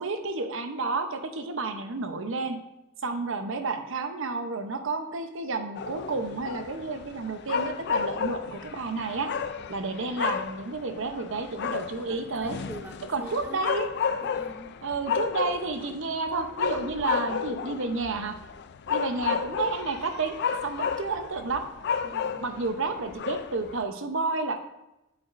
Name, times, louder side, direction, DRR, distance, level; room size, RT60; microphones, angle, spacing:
voice 1, 0.0-2.6 3.0-9.3 9.7-12.6 13.1-13.9 14.8-18.4 18.9-20.4 20.6-21.6 22.4-24.6, right 3 dB, 60° right, 7 dB, 0.8 m, -31 dB
sound 1, 5.7-23.8, left 7 dB, 50° left, 0.4 m, -32 dB
voice 2, 9.6-9.9 12.1-13.6 14.2-14.7 22.0-22.5, right 1 dB, 10° right, 4 dB, 0.5 m, -44 dB
8.4 x 7.9 x 2.6 m, 0.93 s
head